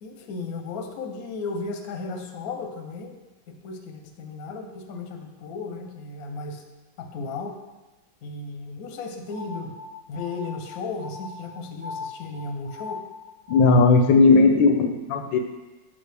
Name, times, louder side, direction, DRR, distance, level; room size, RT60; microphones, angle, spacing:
voice 1, 0.0-3.2 3.5-6.6 7.0-7.6 8.2-9.7 10.1-13.0, left 3 dB, 60° left, 4 dB, 1.0 m, -35 dB
sound 1, 9.3-14.2, left 4 dB, 15° right, 1.6 m, -39 dB
voice 2, 13.5-15.4, left 3 dB, 80° left, 5 dB, 1.3 m, -17 dB
7.3 x 5.7 x 3.4 m, 1.1 s
omnidirectional pair, 2.1 m